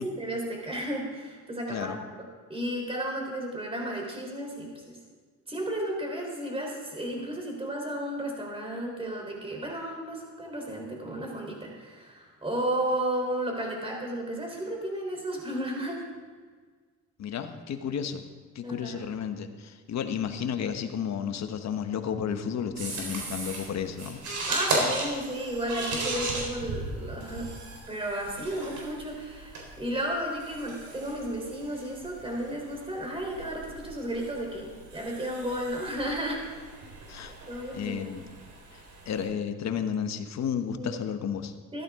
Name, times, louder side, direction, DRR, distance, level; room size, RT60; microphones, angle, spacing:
voice 1, 0.0-5.0 5.5-16.0 18.6-19.0 24.5-27.5 27.9-36.4 37.5-38.1 40.8-41.0 41.7-41.8, right 1 dB, 20° right, 0 dB, 3.8 m, -33 dB
voice 2, 17.2-18.2 18.5-24.2 37.1-37.3 37.7-38.2 39.1-41.5, left 7 dB, 60° left, 8 dB, 1.1 m, -32 dB
sound 1, 22.8-39.3, right 2 dB, 75° right, 4.1 m, -37 dB
14.5 x 12.0 x 3.7 m, 1.5 s
cardioid pair, 90°, 30 cm